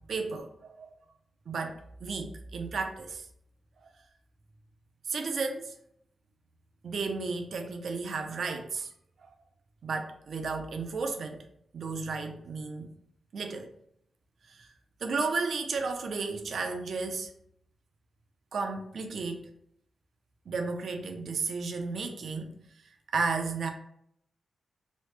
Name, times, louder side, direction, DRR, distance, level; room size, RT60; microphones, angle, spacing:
voice 1, 0.1-1.0 1.5-3.3 3.8-3.9 5.1-5.7 6.8-8.9 9.2-9.3 9.8-11.4 11.7-12.9 13.3-13.7 14.5-14.7 15.0-17.3 18.5-19.5 20.5-22.6 22.8-23.7, right 4 dB, 65° right, 5 dB, 0.4 m, -33 dB
3.0 x 2.0 x 3.1 m, 0.70 s
wide cardioid pair, 160°, 0 cm